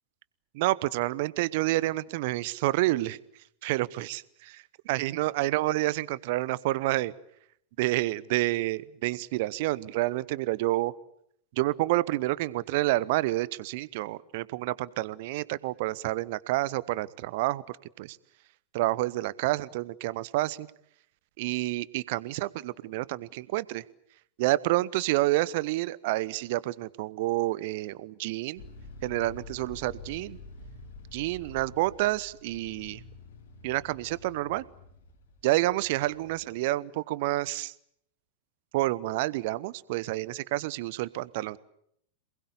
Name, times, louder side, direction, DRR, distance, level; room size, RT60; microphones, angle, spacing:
voice 1, 0.5-3.2 3.6-7.1 7.8-10.9 11.5-18.2 18.7-20.7 21.4-23.8 24.4-28.6 29.0-30.4 31.1-33.0 33.6-34.6 35.4-37.7 38.7-41.6, right 18 dB, 50° right, 20 dB, 0.9 m, -29 dB
sound 1, 28.6-36.4, left 3 dB, 60° left, 3.8 m, -48 dB
27.5 x 20.5 x 8.4 m, 0.71 s
figure-of-eight pair, 90°, 0 cm